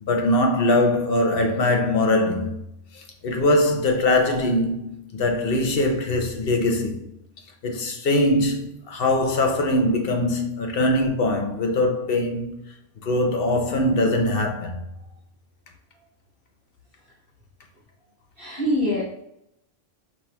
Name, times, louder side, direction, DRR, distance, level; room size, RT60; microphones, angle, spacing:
voice 1, 0.0-2.5 2.9-7.0 7.6-12.6 13.0-14.8, left 1 dB, 55° left, 0.8 m, -22 dB
voice 2, 18.4-19.0, equal, 50° right, 1.4 m, -23 dB
5.7 x 2.7 x 3.3 m
omnidirectional pair, 1.2 m